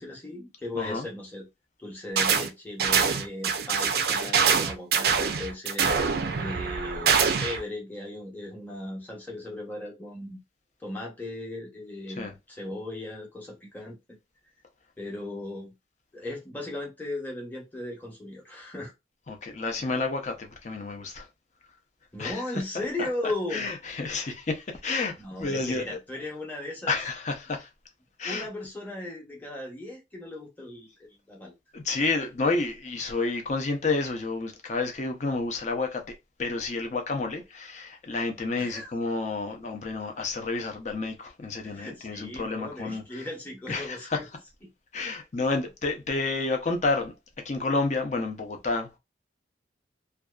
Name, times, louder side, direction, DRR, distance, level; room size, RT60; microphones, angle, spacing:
voice 1, 0.0-1.5 1.8-10.4 10.8-14.0 15.0-15.7 16.1-18.9 22.1-23.7 25.2-26.9 28.2-31.5 38.6-38.9 40.0-40.1 41.6-44.3 44.6-44.7, left 1 dB, 10° left, 0.8 m, -37 dB
voice 2, 0.8-1.1 12.2-12.3 19.3-21.3 22.2-22.4 22.7-26.0 26.9-27.7 28.2-28.5 31.7-36.0 36.4-43.2 43.7-44.2 44.9-47.1 47.4-49.0, left 3 dB, 40° left, 0.5 m, -30 dB
sound 1, 2.2-2.5 2.8-7.6, right 6 dB, 55° right, 0.4 m, -24 dB
2.6 x 2.2 x 2.3 m
head